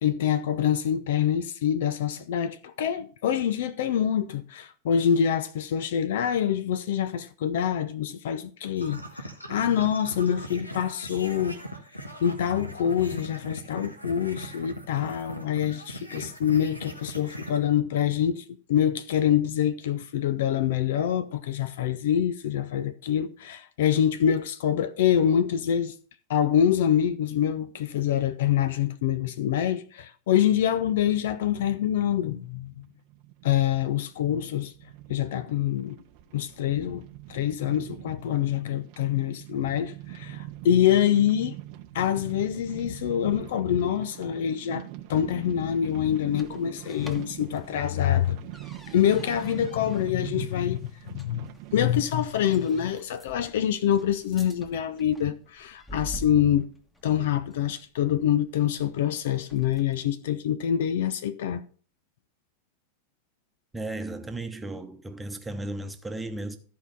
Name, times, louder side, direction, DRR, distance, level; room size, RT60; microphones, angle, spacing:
voice 1, 0.0-11.6 12.2-25.9 26.3-32.8 33.4-34.7 35.1-36.0 36.3-41.6 41.9-48.4 48.9-50.8 51.1-56.7 57.0-61.6, left 9 dB, 55° left, 0.6 m, -25 dB
sound 1, 8.8-17.6, equal, 85° left, 1.3 m, -40 dB
sound 2, 32.7-52.0, right 16 dB, 45° right, 0.7 m, -44 dB
sound 3, 45.0-60.1, equal, 10° left, 1.4 m, -49 dB
voice 2, 63.7-66.6, right 2 dB, 10° right, 1.1 m, -35 dB
13.0 x 4.8 x 5.4 m
figure-of-eight pair, 90°, 0 cm